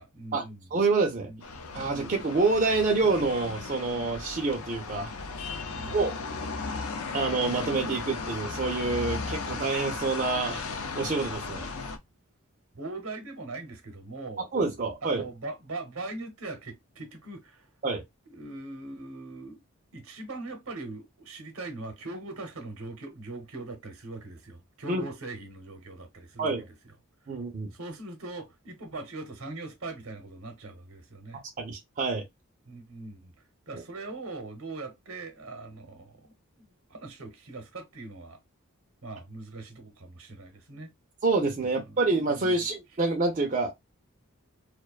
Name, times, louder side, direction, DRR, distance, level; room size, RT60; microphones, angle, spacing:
voice 1, 0.0-0.7 1.2-1.4 1.8-2.2 5.7-6.2 12.7-14.5 15.0-17.7 18.3-19.6 19.9-26.7 27.3-27.4 27.7-31.4 32.7-33.3 33.7-38.4 39.0-40.9 41.6-42.7, right 2 dB, 80° right, 0.8 m, -41 dB
voice 2, 0.7-1.3 1.7-5.1 5.9-6.1 7.1-10.6 10.9-11.7 14.5-15.2 17.8-18.0 24.9-25.0 26.4-26.6 27.3-27.7 31.6-32.2 33.7-33.8 41.2-43.7, right 3 dB, 35° right, 0.4 m, -27 dB
sound 1, 1.4-12.0, left 4 dB, 80° left, 0.4 m, -36 dB
2.4 x 2.2 x 2.3 m
head